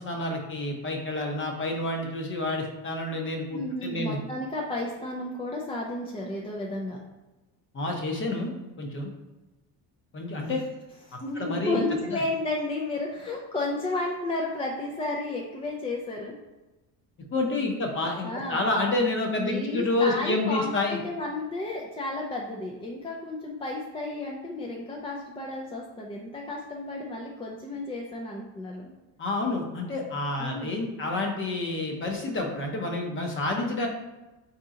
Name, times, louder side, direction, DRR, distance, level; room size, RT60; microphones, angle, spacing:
voice 1, 0.0-4.2 7.7-9.1 10.1-10.6 11.3-12.2 17.3-21.0 29.2-33.9, left 2 dB, 30° left, 1 dB, 0.8 m, -29 dB
voice 2, 3.5-7.0 10.4-10.5 11.1-16.3 18.2-18.6 19.4-28.9 30.4-30.8, left 2 dB, 15° left, -2 dB, 0.4 m, -32 dB
3.7 x 2.8 x 3.7 m, 1.1 s
cardioid pair, 125°, 38 cm